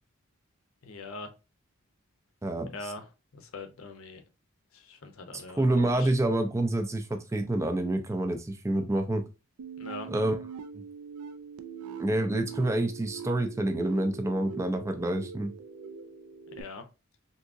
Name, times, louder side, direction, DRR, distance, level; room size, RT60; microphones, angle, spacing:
voice 1, 0.8-1.3 2.7-3.0 3.3-4.2 4.7-6.1 9.8-10.1 16.6-16.8, left 3 dB, 70° left, 0.7 m, -42 dB
voice 2, 2.4-2.9 5.3-9.2 10.1-10.4 10.7-10.8 12.0-15.5, right 1 dB, 15° right, 0.4 m, -28 dB
sound 1, 9.6-16.6, right 6 dB, 90° right, 0.4 m, -42 dB
3.6 x 2.8 x 2.5 m
head